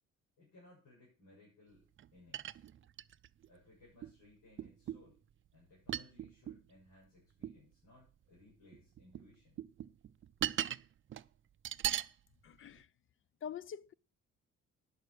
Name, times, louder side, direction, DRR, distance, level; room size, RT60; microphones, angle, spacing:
voice 1, 0.4-1.8 2.1-2.7 3.5-5.2 5.5-9.6, left 2 dB, 85° left, 7.7 m, -62 dB
sound 1, 2.0-2.1 2.3-3.5 4.0-4.1 4.6-5.1 5.9-6.6 7.4-7.6 8.7-9.3 9.6-10.8 11.1-11.3 11.6-12.1 12.8-12.9, right 11 dB, 40° right, 0.4 m, -38 dB
voice 2, 12.4-12.9 13.4-13.9, left 8 dB, 45° left, 0.5 m, -45 dB
10.5 x 6.5 x 6.7 m
cardioid pair, 90°, 30 cm